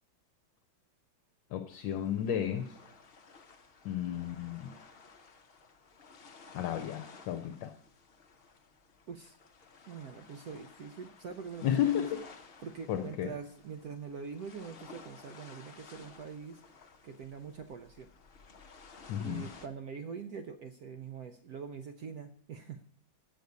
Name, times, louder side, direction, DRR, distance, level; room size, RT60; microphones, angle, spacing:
voice 1, 1.5-2.8 3.8-4.7 6.5-7.7 11.6-12.3 12.9-13.3 19.1-19.5, left 10 dB, 75° left, 8 dB, 1.3 m, -33 dB
sound 1, 1.7-19.7, left 4 dB, 50° left, 0.7 m, -55 dB
voice 2, 9.9-12.2 12.6-16.6 17.0-18.1 19.2-22.8, right 6 dB, 70° right, 7 dB, 0.9 m, -44 dB
8.3 x 6.6 x 7.9 m, 0.63 s
omnidirectional pair, 2.1 m